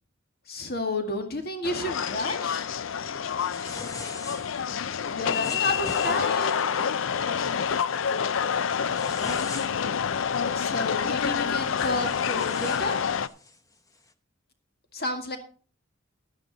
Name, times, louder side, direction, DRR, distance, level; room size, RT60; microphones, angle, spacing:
voice 1, 0.5-2.7 5.1-6.7 10.6-13.0 14.9-15.4, left 2 dB, 50° left, 5 dB, 2.0 m, -31 dB
sound 1, 1.6-13.3, left 7 dB, 75° left, 0.5 m, -27 dB
sound 2, 3.4-4.6 5.3-6.7 7.2-7.5 7.9-8.2 8.6-10.0 11.2-11.3 11.6-13.6, left 2 dB, 15° left, 0.8 m, -42 dB
12.0 x 9.8 x 4.0 m, 0.39 s
head